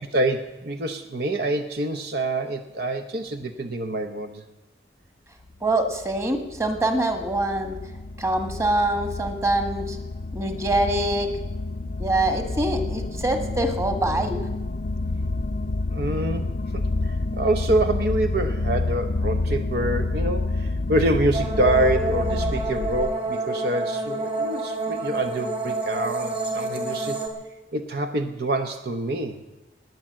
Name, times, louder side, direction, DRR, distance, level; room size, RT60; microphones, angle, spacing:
voice 1, 0.1-4.4 15.9-27.2 27.7-29.4, right 1 dB, 60° right, 7 dB, 0.9 m, -26 dB
sound 1, 5.6-23.2, left 2 dB, 55° left, 0.5 m, -28 dB
voice 2, 5.6-7.8 8.2-10.0 10.3-11.3 12.0-14.4, right 1 dB, 15° right, 6 dB, 1.6 m, -24 dB
sound 2, 21.3-27.3, right 2 dB, 30° right, 2.5 m, -28 dB
19.0 x 9.3 x 7.5 m, 1.1 s
head